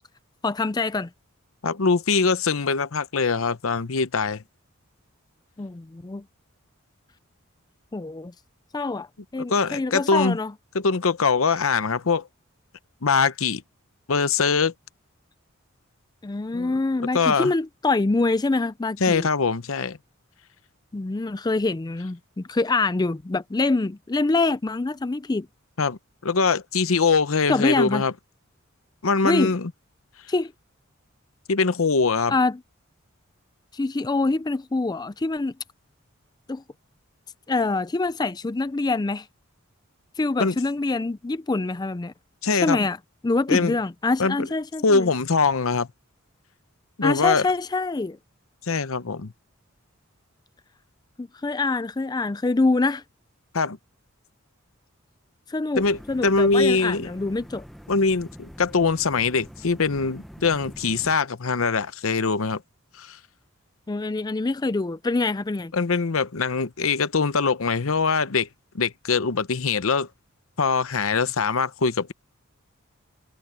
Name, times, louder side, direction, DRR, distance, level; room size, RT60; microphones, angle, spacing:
voice 1, 0.4-1.1 5.6-6.2 7.9-8.3 8.7-9.1 9.3-10.5 16.2-19.3 20.9-25.5 27.5-28.0 29.2-29.5 30.3-30.5 32.3-32.6 33.7-35.5 36.5-36.6 37.5-39.3 40.2-42.1 42.6-43.0 43.2-45.1 47.0-48.2 51.2-53.0 55.5-55.8 56.1-57.6 63.9-65.7, left 3 dB, 20° left, 0.4 m, -25 dB
voice 2, 1.6-4.4 9.5-10.4 10.7-12.3 13.0-13.6 14.1-14.7 16.5-16.7 17.1-17.5 19.0-20.0 25.8-28.1 29.0-29.7 31.5-32.3 40.4-40.5 42.4-42.8 43.5-43.8 44.2-44.5 44.8-45.9 47.0-47.5 48.6-49.3 53.5-53.8 55.8-57.1 57.9-62.6 63.0-63.2 65.7-68.5 68.7-70.1 70.6-72.1, left 4 dB, 75° left, 0.8 m, -23 dB
sound 1, 55.7-61.2, equal, ahead, 0.9 m, -44 dB
head